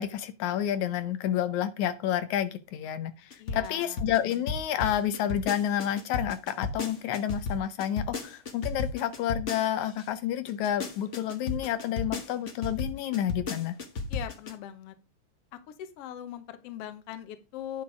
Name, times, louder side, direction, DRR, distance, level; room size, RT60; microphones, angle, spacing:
voice 1, 0.0-13.8, left 11 dB, 80° left, 11 dB, 2.2 m, -30 dB
sound 1, 3.3-10.0 10.5-14.5, left 3 dB, 45° left, 0.9 m, -34 dB
voice 2, 3.4-4.0 14.1-14.9 15.7-17.8, left 11 dB, 65° left, 11 dB, 1.8 m, -40 dB
10.0 x 6.0 x 4.8 m, 0.27 s
omnidirectional pair, 3.3 m